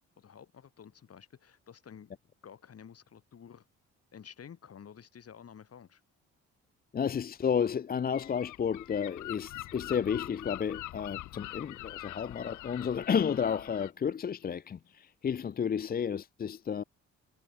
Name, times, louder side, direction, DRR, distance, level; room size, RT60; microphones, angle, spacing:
voice 1, 0.2-2.1 2.4-3.6 4.1-6.0, left 8 dB, 50° left, 6.9 m, -51 dB
voice 2, 6.9-16.8, left 7 dB, 30° left, 0.5 m, -32 dB
Gull seagull, 8.1-13.9, left 17 dB, 80° left, 0.7 m, -44 dB
cardioid pair, 90°, 30 cm